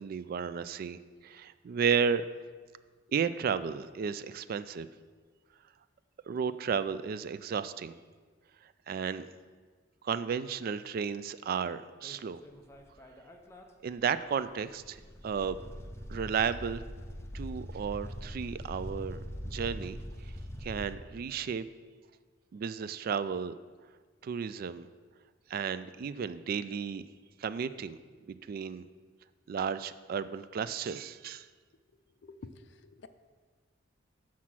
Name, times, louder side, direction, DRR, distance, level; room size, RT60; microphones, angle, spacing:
voice 1, 0.0-2.2 3.1-4.9 6.3-8.0 8.9-9.3 10.0-12.4 13.8-15.0 15.2-15.6 16.1-16.8 17.3-20.0 20.6-21.7 22.5-23.5 24.2-24.9 25.5-27.0 27.4-28.0 28.3-28.9 29.5-31.5, right 6 dB, 50° right, 13 dB, 0.3 m, -33 dB
sound 1, 12.0-13.6 13.9-14.0 14.4-20.9, equal, 15° left, 0.6 m, -42 dB
voice 2, 32.1-33.1, left 3 dB, 65° left, 12 dB, 0.4 m, -50 dB
6.0 x 5.8 x 6.1 m, 1.5 s
head